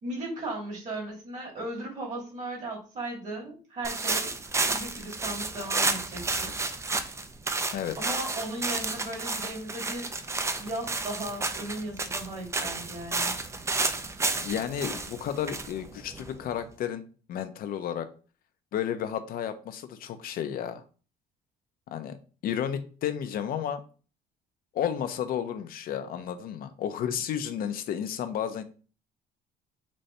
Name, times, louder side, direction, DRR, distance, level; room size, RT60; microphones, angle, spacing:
voice 1, 0.0-4.3 4.7-6.5 8.0-10.2 10.6-13.4, right 1 dB, 45° right, -2 dB, 2.1 m, -36 dB
sound 1, 3.8-16.6, right 3 dB, 15° right, 0.4 m, -31 dB
voice 2, 14.3-17.0 17.3-18.1 18.7-20.8 21.9-22.2 22.4-23.8 24.7-28.6, left 9 dB, 60° left, 9 dB, 0.5 m, -32 dB
4.0 x 2.6 x 3.2 m, 0.38 s
cardioid pair, 110°, 17 cm